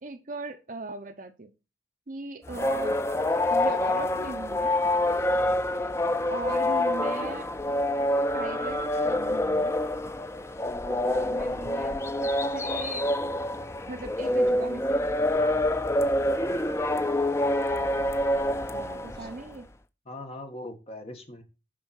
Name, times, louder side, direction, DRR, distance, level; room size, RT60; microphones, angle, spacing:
voice 1, 0.0-1.5 2.1-3.0 3.5-4.7 6.3-7.5 8.3-9.8 10.9-13.1 13.9-15.3 18.7-19.7, right 3 dB, 45° right, 0.8 m, -39 dB
sound 1, 2.5-19.5, left 1 dB, 15° left, 0.4 m, -26 dB
voice 2, 20.0-21.4, left 1 dB, 35° left, 1.6 m, -41 dB
9.3 x 5.7 x 4.3 m
head